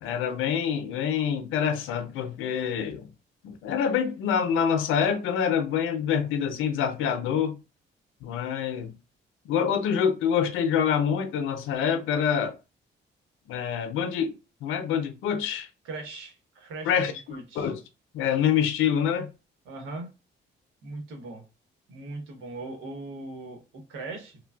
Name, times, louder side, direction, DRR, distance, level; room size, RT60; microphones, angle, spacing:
voice 1, 0.0-3.1 3.4-7.6 8.2-8.9 9.4-12.6 13.5-14.3 14.6-15.7 16.9-17.8 18.1-19.3, left 8 dB, 85° left, 0.5 m, -26 dB
voice 2, 15.8-17.7 19.7-20.1 20.8-21.4 21.9-24.4, right 2 dB, 90° right, 1.0 m, -39 dB
3.2 x 2.2 x 2.3 m
cardioid pair, 90°, 20 cm